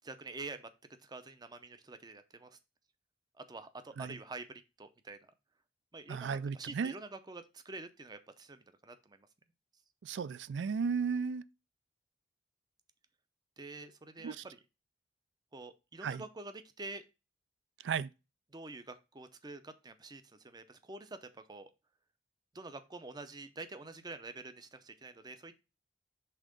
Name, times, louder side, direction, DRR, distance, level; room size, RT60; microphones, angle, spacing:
voice 1, 0.0-0.7 1.0-2.6 3.4-5.3 5.9-9.3 13.6-14.6 15.5-17.0 18.5-21.7 22.5-25.6, right 3 dB, 20° right, 0.6 m, -47 dB
voice 2, 6.1-6.9 10.0-11.4 14.2-14.4 16.0-16.2 17.8-18.1, right 6 dB, 70° right, 0.3 m, -34 dB
5.7 x 3.6 x 5.1 m
head